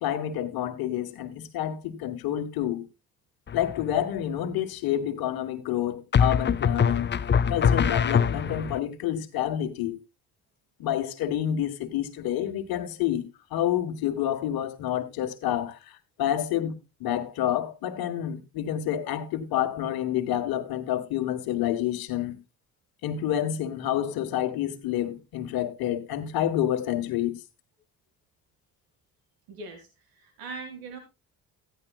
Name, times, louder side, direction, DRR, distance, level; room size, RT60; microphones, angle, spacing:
voice 1, 0.0-2.8 3.5-7.1 7.5-10.0 10.8-13.2 13.5-16.7 17.0-22.4 23.0-27.3, left 11 dB, 80° left, 1.6 m, -28 dB
sound 1, 3.5-4.0 6.1-8.8, left 7 dB, 30° left, 0.6 m, -23 dB
voice 2, 29.5-31.0, right 3 dB, 85° right, 2.0 m, -41 dB
14.0 x 10.5 x 2.4 m
supercardioid pair, 65°, 36 cm